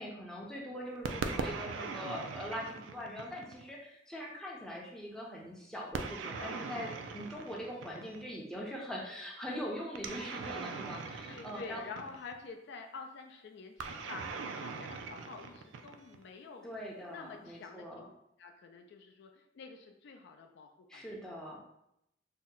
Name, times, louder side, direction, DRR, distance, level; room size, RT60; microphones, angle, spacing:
voice 1, 0.0-11.8 16.6-18.0 20.9-21.6, equal, 5° left, -3 dB, 0.5 m, -42 dB
sound 1, 1.0-3.7 5.9-8.3 10.0-12.4 13.8-16.2, right 4 dB, 85° right, 0.3 m, -40 dB
voice 2, 11.3-16.7 17.1-18.1 18.4-21.3, left 4 dB, 65° left, 4 dB, 0.3 m, -48 dB
2.7 x 2.1 x 3.7 m, 0.80 s
head